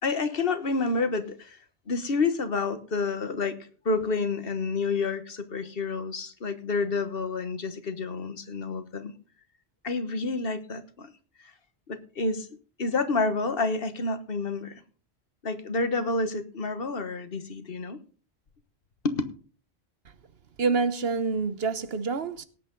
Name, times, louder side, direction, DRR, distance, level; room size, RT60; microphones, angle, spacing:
voice 1, 0.0-1.6 1.9-9.1 9.8-11.1 11.4-11.5 11.9-12.5 12.8-14.8 15.4-18.0 19.0-19.2, left 3 dB, 60° left, 1.5 m, -29 dB
voice 2, 20.6-22.4, right 4 dB, 65° right, 1.2 m, -27 dB
18.0 x 8.2 x 3.8 m
omnidirectional pair, 1.1 m